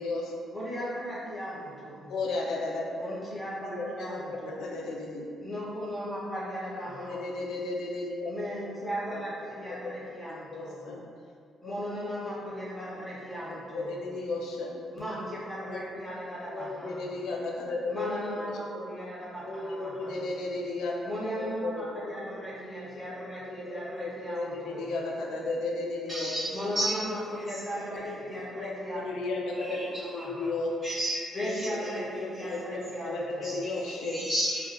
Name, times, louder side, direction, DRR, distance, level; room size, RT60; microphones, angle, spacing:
voice 1, 0.0-0.5 2.1-3.2 3.6-5.3 6.8-8.6 9.1-9.2 9.7-9.9 10.5-11.0 11.6-11.7 13.7-14.8 15.6-15.8 16.5-18.1 18.4-18.8 19.4-21.0 21.3-22.1 23.4-26.4 27.8-28.2 28.6-30.7 31.4-34.3, left 2 dB, 80° left, -1 dB, 0.4 m, -34 dB
voice 2, 0.5-2.1 3.0-4.6 5.4-7.2 8.3-10.8 11.6-14.0 14.9-17.1 17.9-20.2 21.0-24.8 26.5-29.2 29.4-30.5 31.3-33.5, equal, 10° left, -9 dB, 1.0 m, -37 dB
voice 3, 26.1-26.9 29.6-29.8 30.8-31.9 32.3-32.5 33.4-33.5 34.1-34.7, right 1 dB, 35° right, -13 dB, 0.9 m, -32 dB
3.4 x 2.3 x 2.4 m, 2.2 s
cardioid pair, 90°, 0 cm